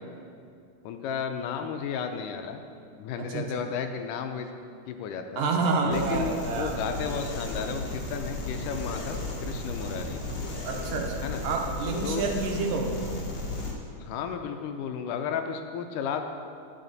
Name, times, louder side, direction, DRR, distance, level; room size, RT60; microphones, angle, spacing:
voice 1, 0.8-2.6 3.0-4.5 4.9-5.5 5.8-10.2 11.2-11.4 12.0-12.3 14.0-16.2, left 7 dB, 80° left, 6 dB, 2.0 m, -33 dB
voice 2, 5.4-6.7 10.6-12.9, right 4 dB, 80° right, 2 dB, 2.6 m, -28 dB
sound 1, 5.9-13.7, left 2 dB, 50° left, 1.2 m, -34 dB
10.5 x 8.9 x 4.0 m, 2.4 s
omnidirectional pair, 3.9 m